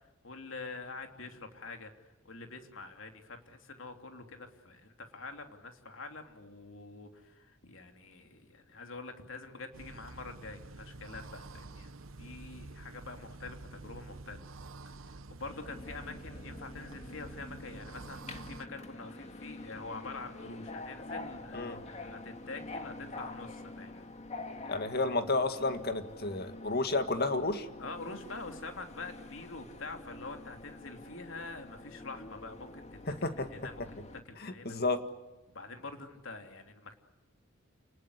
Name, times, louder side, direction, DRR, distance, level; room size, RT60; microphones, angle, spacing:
voice 1, 0.2-1.9 2.2-11.9 12.2-14.4 14.8-24.1 24.4-25.1 27.8-32.9 33.5-33.7 34.3-34.8 35.5-36.9, left 3 dB, 70° left, 5 dB, 3.1 m, -46 dB
sound 1, 9.7-18.7, right 2 dB, 80° right, 1.0 m, -48 dB
Subway metro underground, 15.5-34.2, left 2 dB, 35° left, 1.9 m, -46 dB
voice 2, 24.7-27.7 33.1-33.7 34.4-35.0, left 2 dB, 50° left, 8 dB, 2.0 m, -31 dB
29.5 x 20.0 x 9.9 m, 1.1 s
head